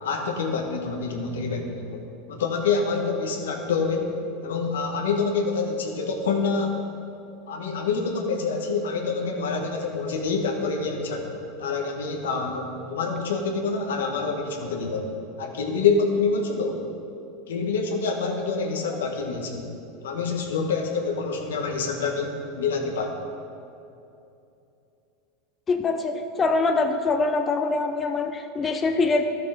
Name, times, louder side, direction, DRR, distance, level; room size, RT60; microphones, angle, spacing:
voice 1, 0.0-2.0 2.3-4.2 4.4-6.8 7.5-11.3 11.6-15.1 15.4-16.8 17.5-19.7 20.0-23.2, left 4 dB, 90° left, 2 dB, 1.4 m, -26 dB
voice 2, 25.7-29.2, left 3 dB, 25° left, 6 dB, 0.6 m, -24 dB
12.0 x 6.7 x 5.0 m, 2.7 s
hypercardioid pair, 110°, 0 cm